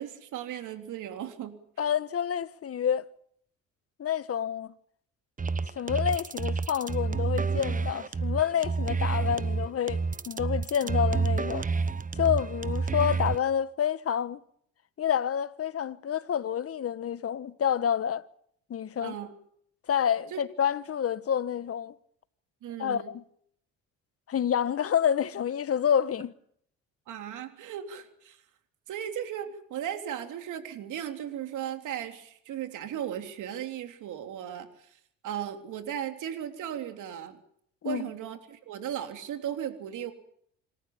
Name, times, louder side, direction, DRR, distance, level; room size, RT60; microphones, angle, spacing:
voice 1, 0.0-1.9 19.0-19.3 20.3-20.4 22.6-23.1 27.1-28.4 28.9-34.7 35.2-37.4 37.8-40.1, right 10 dB, 70° right, 3.4 m, -36 dB
voice 2, 1.8-3.1 4.0-4.7 5.7-11.7 12.1-14.4 15.0-18.2 18.7-19.1 19.9-21.9 22.8-23.2 24.3-26.3 37.8-38.1, left 9 dB, 45° left, 1.3 m, -28 dB
sound 1, 5.4-13.4, right 4 dB, 25° right, 1.0 m, -29 dB
26.5 x 14.0 x 8.5 m
supercardioid pair, 70°, 31 cm